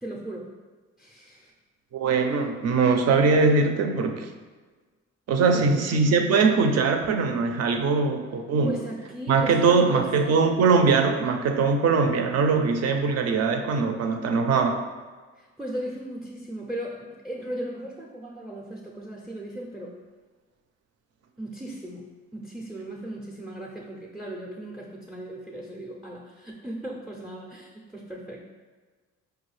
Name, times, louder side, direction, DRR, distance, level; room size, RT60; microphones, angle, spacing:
voice 1, 0.0-0.5 1.0-1.5 5.4-5.9 8.6-10.4 15.4-20.0 21.4-28.4, right 1 dB, ahead, -2 dB, 0.4 m, -37 dB
voice 2, 1.9-4.3 5.3-8.8 9.3-14.8, right 4 dB, 55° right, 5 dB, 0.5 m, -21 dB
4.6 x 2.3 x 3.2 m, 1.4 s
cardioid pair, 90°, 30 cm